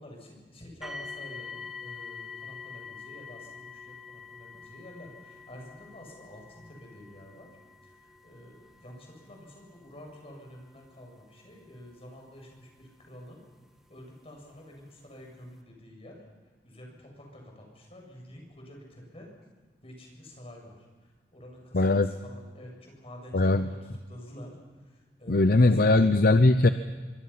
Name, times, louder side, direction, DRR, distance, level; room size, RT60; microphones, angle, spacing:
voice 1, 0.0-7.5 7.8-13.4 13.9-16.2 16.6-19.3 19.8-24.5 24.9-26.1, equal, 35° left, 1 dB, 7.2 m, -48 dB
sound 1, 0.8-13.7 14.5-14.6 15.2-15.3, left 5 dB, ahead, 2.0 m, -46 dB
voice 2, 21.7-22.1 23.3-23.7 25.3-26.7, left 2 dB, 60° left, 10 dB, 0.8 m, -20 dB
25.0 x 24.0 x 5.8 m, 1.4 s
head